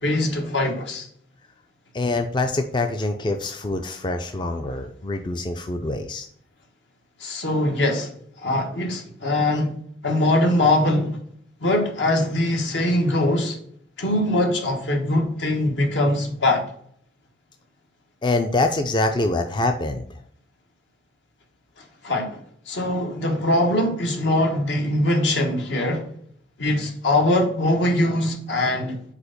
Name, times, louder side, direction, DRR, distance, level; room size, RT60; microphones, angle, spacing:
voice 1, 0.0-1.1 7.2-8.1 8.4-9.8 10.0-11.2 11.6-13.6 14.0-16.7 21.8-26.1 26.6-29.0, left 1 dB, 75° left, 1.3 m, -22 dB
voice 2, 1.9-6.3 18.2-20.1, left 2 dB, 25° left, 0.4 m, -25 dB
4.9 x 4.4 x 5.0 m
head